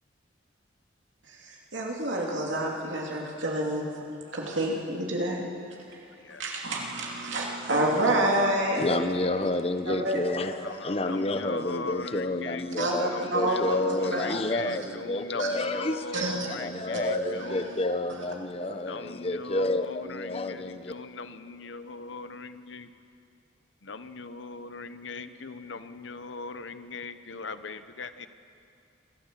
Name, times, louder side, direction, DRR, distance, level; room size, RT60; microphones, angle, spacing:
voice 1, 1.5-3.9 4.3-5.4 6.4-9.0 9.9-10.2 12.8-14.4 14.7-14.8 15.4-15.5 16.1-16.5 16.9-17.2 17.5-17.6 18.6-18.7, right 1 dB, 80° right, -1 dB, 2.8 m, -28 dB
voice 2, 8.8-20.9, left 2 dB, 30° left, 10 dB, 0.9 m, -30 dB
voice 3, 11.1-17.8 18.9-22.9 23.8-28.3, left 3 dB, 70° left, 11 dB, 0.9 m, -39 dB
26.5 x 13.5 x 7.6 m, 2.4 s
head